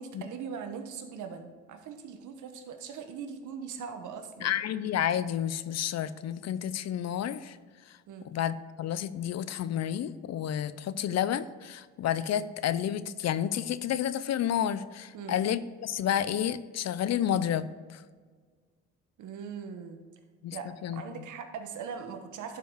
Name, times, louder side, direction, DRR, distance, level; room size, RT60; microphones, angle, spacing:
voice 1, 0.0-4.5 8.1-8.3 15.1-15.3 19.2-20.0 20.5-22.6, right 6 dB, 75° right, 6 dB, 1.2 m, -40 dB
voice 2, 4.4-7.6 7.9-8.0 8.3-18.0 20.4-20.6 20.8-21.3, left 10 dB, 60° left, 15 dB, 0.6 m, -30 dB
11.5 x 5.1 x 4.6 m, 1.5 s
cardioid pair, 90°, 30 cm